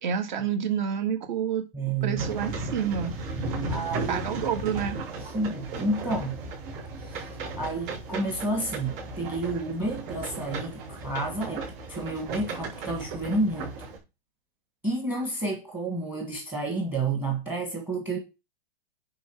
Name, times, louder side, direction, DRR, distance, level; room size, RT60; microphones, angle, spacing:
voice 1, 0.0-1.6 2.0-3.2 4.1-5.0, right 8 dB, 50° right, 2.1 m, -28 dB
voice 2, 1.7-2.3 3.7-4.4 5.2-6.4 7.0-13.7 14.8-18.2, right 2 dB, 5° right, 1.3 m, -30 dB
sound 1, 2.2-14.0, right 3 dB, 25° right, 5.0 m, -35 dB
10.0 x 3.7 x 6.1 m
hypercardioid pair, 170°, 29 cm